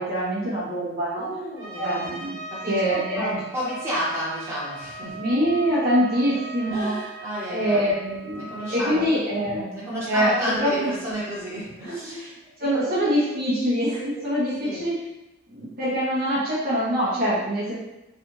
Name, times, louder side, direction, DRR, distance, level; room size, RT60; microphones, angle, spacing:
voice 1, 0.0-1.3 1.8-2.4 2.7-3.4 5.2-6.9 7.5-9.7 10.1-10.3 10.6-10.9 11.8-11.9 12.6-14.9 15.5-17.7, equal, 45° right, -9 dB, 1.0 m, -24 dB
voice 2, 1.2-1.9 2.5-5.2 6.7-7.9 8.4-9.1 9.3-12.4 14.6-14.8, equal, 15° right, -10 dB, 1.1 m, -31 dB
Trumpet, 1.6-8.9, right 3 dB, 65° right, 0.6 m, -38 dB
3.3 x 2.4 x 3.0 m, 0.97 s
head